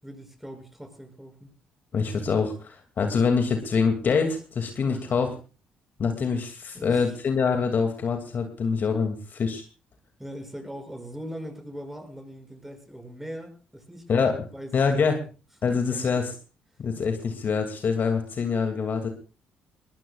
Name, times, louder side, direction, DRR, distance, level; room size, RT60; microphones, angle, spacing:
voice 1, 0.0-1.5 4.8-5.0 6.7-7.2 10.2-14.3 14.5-15.0 15.7-16.2, equal, 5° right, 4 dB, 6.8 m, -41 dB
voice 2, 1.9-5.3 6.0-9.6 14.1-14.4 14.7-15.2 15.6-16.3 16.8-19.1, left 5 dB, 50° left, 5 dB, 2.5 m, -25 dB
21.5 x 19.5 x 2.4 m, 0.34 s
hypercardioid pair, 50°, 4 cm